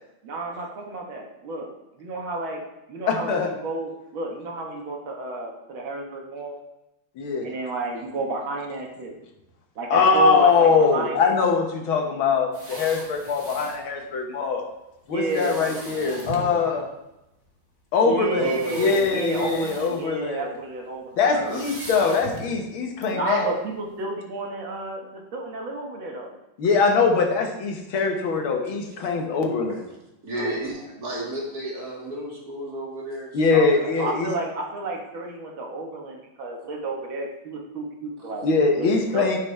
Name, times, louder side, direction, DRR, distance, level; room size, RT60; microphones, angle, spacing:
voice 1, 0.2-1.7 2.0-2.6 2.9-6.6 7.4-9.2 9.8-11.4 15.1-16.0 18.0-21.5 23.1-26.4 30.3-30.6 33.5-38.5 38.8-39.4, right 2 dB, 80° right, 0 dB, 2.2 m, -31 dB
voice 2, 3.1-3.5 7.2-7.5 9.9-14.6 15.1-16.8 17.9-18.5 18.8-20.5 21.2-23.5 26.6-29.8 33.3-34.3 38.4-39.4, left 4 dB, 90° left, 2 dB, 2.1 m, -22 dB
sound 1, 12.5-13.8 15.3-16.6 17.5-17.6 18.3-20.1 20.4-20.6 21.4-22.6 23.0-23.1, right 2 dB, 25° right, 1.2 m, -39 dB
voice 3, 16.0-16.6 18.3-18.9 19.3-19.6 21.3-21.7 29.7-29.8 30.2-33.9, right 1 dB, 50° right, -4 dB, 2.7 m, -33 dB
14.0 x 5.9 x 3.3 m, 0.91 s
omnidirectional pair, 2.2 m